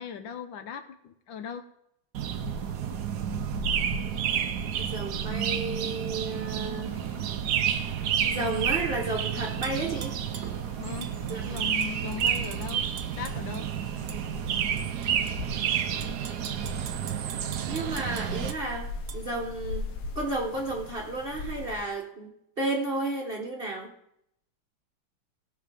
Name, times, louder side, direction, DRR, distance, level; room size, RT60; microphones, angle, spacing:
voice 1, 0.0-1.6 10.8-11.2 11.4-12.8 13.2-13.7, left 7 dB, 70° left, 8 dB, 1.4 m, -38 dB
sound 1, 2.1-18.5, right 9 dB, 65° right, 1.1 m, -30 dB
sound 2, 2.2-21.9, left 3 dB, 85° left, 2.0 m, -41 dB
voice 2, 4.8-6.9 8.2-10.2 11.3-11.6 17.7-19.9 20.1-22.3 22.6-23.9, right 2 dB, 30° right, 0 dB, 1.2 m, -32 dB
Tap / Glass, 9.6-10.5 11.0-13.6 14.1-14.2 14.8-15.3 15.8-18.6 19.1-19.2, right 8 dB, 80° right, 1.9 m, -44 dB
17.5 x 5.8 x 5.1 m, 0.75 s
omnidirectional pair, 2.3 m